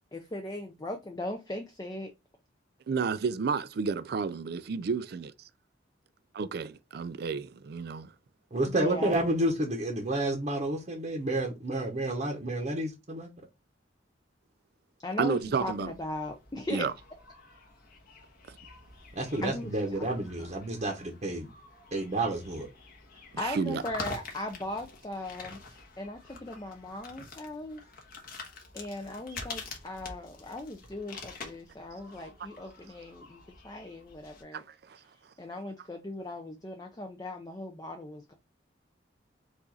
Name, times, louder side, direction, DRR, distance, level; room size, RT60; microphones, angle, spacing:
voice 1, 0.1-2.1 8.6-9.2 15.0-16.9 19.4-20.1 23.4-27.8 28.7-34.6 35.4-38.4, left 1 dB, 20° left, 0.5 m, -38 dB
voice 2, 2.9-5.3 6.4-8.1 15.2-15.9 16.7-16.9 18.5-18.6 23.3-23.8 34.5-34.6, right 5 dB, 55° right, 0.4 m, -31 dB
voice 3, 8.5-13.3 19.1-21.5 21.9-22.7, right 1 dB, 40° right, 0.9 m, -30 dB
sound 1, 15.4-34.4, left 3 dB, 50° left, 1.3 m, -47 dB
4.8 x 2.5 x 4.0 m
head